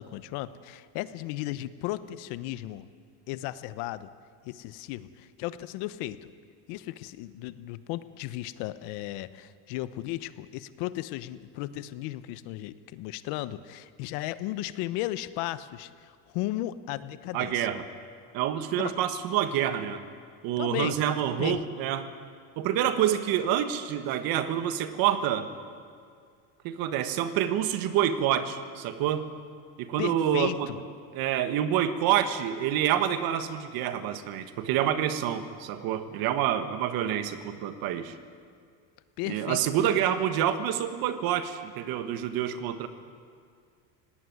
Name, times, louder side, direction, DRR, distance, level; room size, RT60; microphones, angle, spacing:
voice 1, 0.0-2.8 3.3-4.1 4.4-6.3 6.7-17.7 18.8-18.9 20.6-21.0 21.3-21.6 30.0-30.8 39.2-39.6, left 15 dB, 70° left, 14 dB, 1.0 m, -35 dB
voice 2, 17.3-17.8 18.3-20.0 20.4-22.1 22.6-25.5 26.6-29.3 29.8-30.7 31.1-38.1 39.3-42.9, right 10 dB, 55° right, 10 dB, 1.6 m, -27 dB
18.0 x 17.5 x 9.5 m, 2.2 s
cardioid pair, 140°, 41 cm